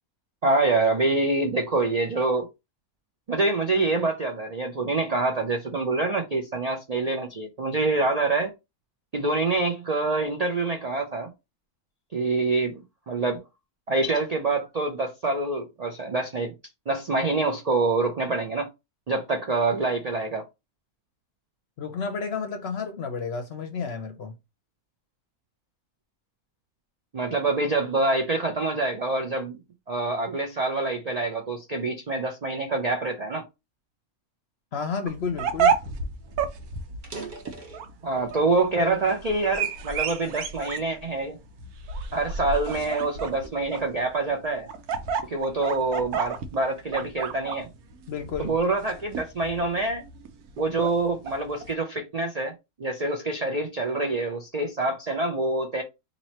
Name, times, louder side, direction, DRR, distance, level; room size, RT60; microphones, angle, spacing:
voice 1, 0.4-2.5 3.3-8.5 9.1-11.3 12.1-13.4 13.9-16.5 16.9-18.7 19.1-20.4 27.1-29.6 29.9-33.4 38.0-41.4 42.1-44.7 45.3-47.7 48.4-50.0 50.6-52.5 52.8-55.8, right 3 dB, 60° right, 0.4 m, -26 dB
voice 2, 21.8-24.3 34.7-35.8 48.1-48.5, left 5 dB, 60° left, 0.7 m, -31 dB
sound 1, 35.1-51.7, right 6 dB, 90° right, 1.2 m, -31 dB
sound 2, 35.8-35.9 36.2-36.4 36.9-38.5 39.0-40.3 40.9-41.2 41.8-43.8, right 4 dB, 40° right, 0.8 m, -44 dB
3.0 x 2.7 x 4.1 m
omnidirectional pair, 1.5 m